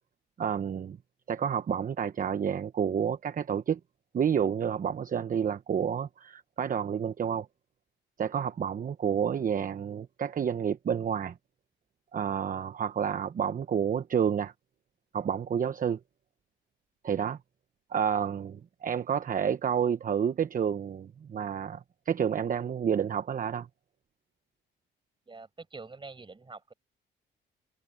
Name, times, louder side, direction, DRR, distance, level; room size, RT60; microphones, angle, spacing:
voice 1, 0.4-1.0 1.3-3.8 4.1-7.5 8.2-11.4 12.1-14.5 15.1-16.0 17.0-17.4 17.9-23.7, right 8 dB, 45° right, 1.0 m, -29 dB
voice 2, 25.3-26.7, right 3 dB, 25° right, 5.4 m, -45 dB
cardioid pair, 90°, 20 cm